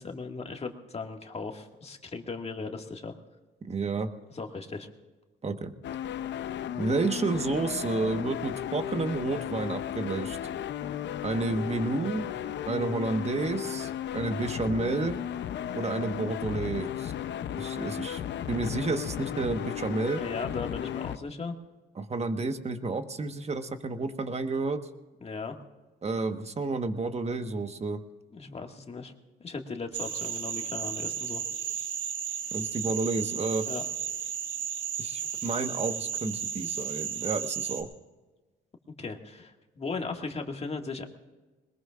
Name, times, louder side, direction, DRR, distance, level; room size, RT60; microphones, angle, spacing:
voice 1, 0.0-3.2 4.3-4.9 20.2-21.5 25.2-25.6 28.3-29.1 29.4-31.4 33.7-33.8 39.0-41.1, left 4 dB, 30° left, 3 dB, 2.0 m, -37 dB
voice 2, 3.6-4.1 5.4-5.7 6.8-10.4 11.2-12.3 12.7-15.2 15.7-17.1 17.6-18.2 18.5-20.2 22.0-24.8 26.0-28.0 32.5-33.7 35.0-37.9, right 3 dB, 35° right, 7 dB, 1.4 m, -30 dB
sound 1, 5.8-21.2, left 10 dB, 65° left, 0.7 m, -35 dB
sound 2, 29.9-37.8, right 8 dB, 75° right, 2.2 m, -34 dB
22.0 x 20.5 x 2.5 m, 1.2 s
cardioid pair, 90°, 20 cm